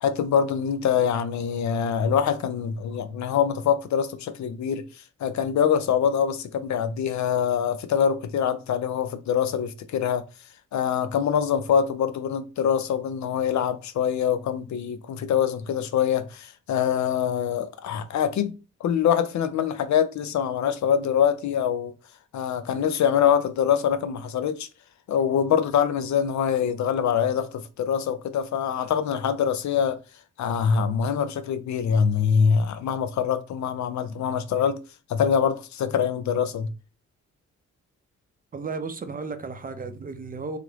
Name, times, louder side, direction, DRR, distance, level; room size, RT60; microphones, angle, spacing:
voice 1, 0.0-4.8 5.2-10.2 10.7-21.9 22.3-24.7 25.1-30.0 30.4-34.8 35.1-36.7, left 8 dB, 75° left, 0.5 m, -24 dB
voice 2, 38.5-40.6, right 4 dB, 30° right, 0.5 m, -34 dB
3.1 x 2.5 x 2.9 m
cardioid pair, 95°, 29 cm